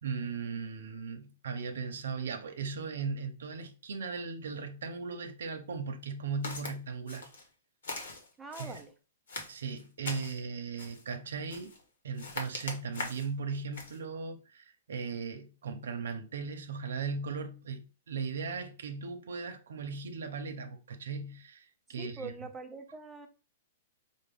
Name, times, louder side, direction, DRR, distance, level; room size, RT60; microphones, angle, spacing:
voice 1, 0.0-7.3 8.6-8.8 9.5-11.7 12.0-22.3, right 5 dB, 85° right, 0.6 m, -38 dB
Walk footsteps, 6.4-6.7 7.1-7.5 7.8-8.8 9.3-10.4 10.8-11.1 11.5-11.8 12.2-13.3 13.7-14.0, left 3 dB, 85° left, 1.1 m, -41 dB
voice 2, 8.4-8.9 22.0-23.3, right 3 dB, 5° right, 0.4 m, -43 dB
4.9 x 2.1 x 3.4 m
hypercardioid pair, 175°, 0 cm